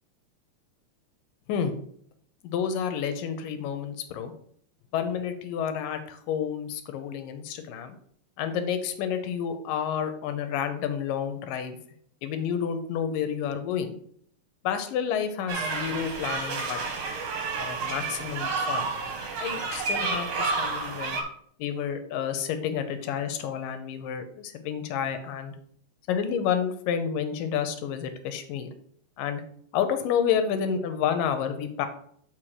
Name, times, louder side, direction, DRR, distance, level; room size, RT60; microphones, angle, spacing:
voice 1, 2.4-4.3 4.9-7.9 8.4-11.8 12.2-14.0 14.6-16.8 17.6-18.9 19.4-21.2 21.6-25.6 26.1-28.7 29.2-29.4 29.7-31.9, left 8 dB, 85° left, 8 dB, 2.5 m, -30 dB
sound 1, 15.5-21.2, right 4 dB, 55° right, 2.0 m, -30 dB
7.4 x 4.6 x 4.9 m, 0.62 s
omnidirectional pair, 3.8 m